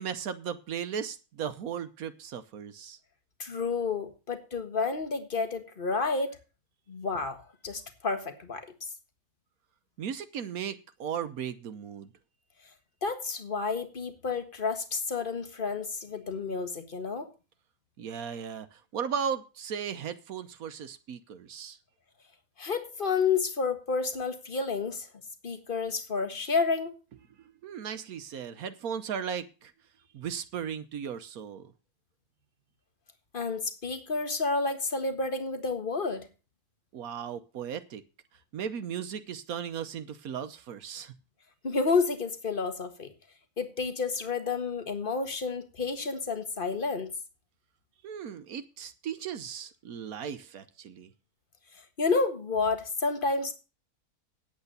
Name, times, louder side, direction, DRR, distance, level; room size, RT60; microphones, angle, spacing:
voice 1, 0.0-3.0 10.0-12.1 18.0-21.8 27.4-29.7 30.1-31.7 36.9-38.0 38.5-41.1 48.0-51.1, right 8 dB, 75° right, 1.3 m, -36 dB
voice 2, 3.4-6.4 6.9-8.7 13.0-17.3 22.6-25.1 25.4-27.0 33.3-36.3 41.6-43.1 43.6-47.1 52.0-53.5, left 4 dB, 35° left, 1.6 m, -30 dB
9.7 x 8.2 x 6.7 m
omnidirectional pair, 1.6 m